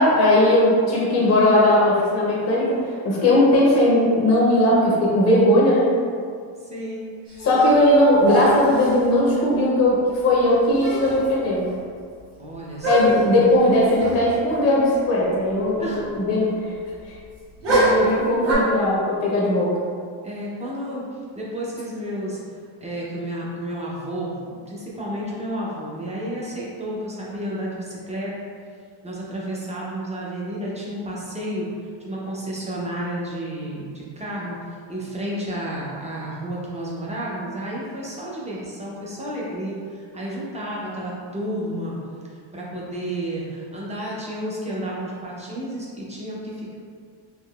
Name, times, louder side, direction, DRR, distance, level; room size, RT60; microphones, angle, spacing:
voice 1, 0.0-2.8 3.0-5.9 7.4-11.7 12.8-16.5 17.7-19.7, left 1 dB, 35° left, -5 dB, 0.6 m, -18 dB
voice 2, 6.6-7.1 12.4-13.2 15.8-16.1 20.2-21.0 21.4-22.4 22.8-28.3 29.0-31.7 32.0-34.6 34.9-42.0 42.5-46.7, right 1 dB, 15° right, -5 dB, 0.5 m, -31 dB
sound 1, 7.3-7.9 8.2-9.0 10.5-10.6 10.8-11.3 11.6-11.7 12.8-13.4 14.0-14.2 14.5-14.6 17.6-18.5, right 1 dB, 65° right, 1.4 m, -23 dB
3.6 x 2.9 x 2.3 m, 2.2 s
cardioid pair, 135°, 46 cm